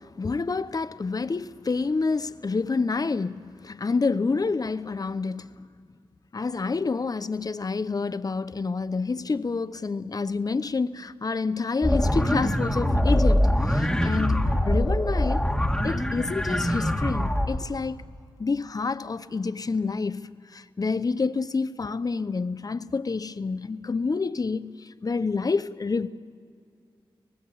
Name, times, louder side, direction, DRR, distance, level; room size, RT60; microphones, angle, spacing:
voice 1, 0.0-5.7 6.3-15.5 15.8-18.0 18.4-26.1, left 4 dB, 45° left, 0.8 m, -28 dB
sound 1, 11.8-17.6, left 1 dB, 5° left, 1.8 m, -23 dB
25.0 x 19.0 x 7.1 m
cardioid pair, 55°, 9 cm